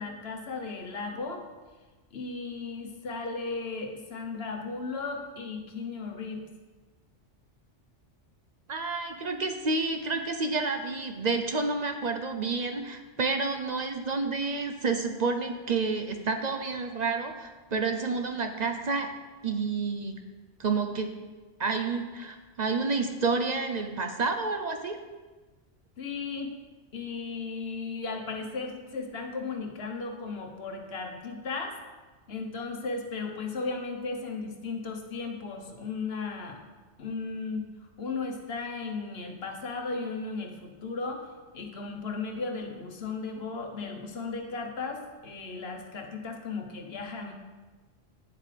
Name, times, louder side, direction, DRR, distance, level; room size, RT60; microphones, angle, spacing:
voice 1, 0.0-1.4 2.1-6.4 26.0-26.6 26.9-31.8 32.3-36.6 37.0-37.7 38.0-41.2 41.5-47.3, left 4 dB, 60° left, 4 dB, 1.2 m, -35 dB
voice 2, 8.7-19.1 19.4-20.2 20.6-21.1 21.6-25.0, right 4 dB, 50° right, 6 dB, 0.5 m, -29 dB
9.9 x 7.6 x 3.3 m, 1.3 s
omnidirectional pair, 1.2 m